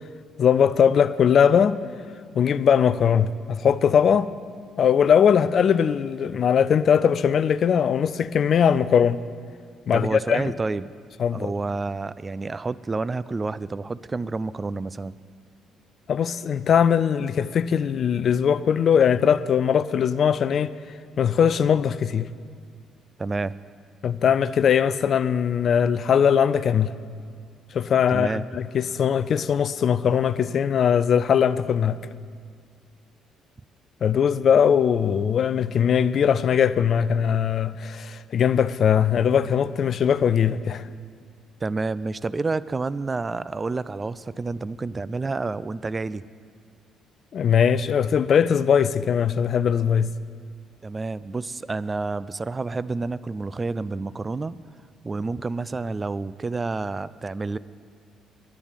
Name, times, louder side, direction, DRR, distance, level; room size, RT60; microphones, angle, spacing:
voice 1, 0.4-1.8 2.3-4.3 4.8-9.2 9.9-10.4 11.2-11.5 16.1-20.7 21.2-22.3 24.0-26.9 27.7-32.0 34.0-40.8 47.3-50.1, left 8 dB, 55° left, 0.4 m, -20 dB
voice 2, 9.9-10.9 11.3-15.1 23.2-23.5 28.1-28.5 41.6-46.2 50.8-54.6 55.0-57.6, right 3 dB, 30° right, 0.4 m, -29 dB
10.0 x 8.5 x 9.1 m
hypercardioid pair, 50°, 0 cm